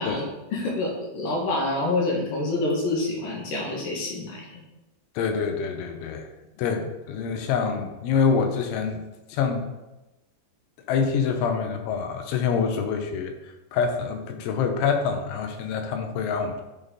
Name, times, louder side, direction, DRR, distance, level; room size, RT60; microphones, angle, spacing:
voice 1, 0.0-4.6 6.8-6.9, left 2 dB, 65° left, -2 dB, 2.6 m, -27 dB
voice 2, 5.2-6.3 6.6-9.0 9.3-9.7 10.9-13.3 13.7-16.6, left 6 dB, 90° left, 5 dB, 3.3 m, -26 dB
11.5 x 4.3 x 3.6 m, 1.0 s
omnidirectional pair, 5.3 m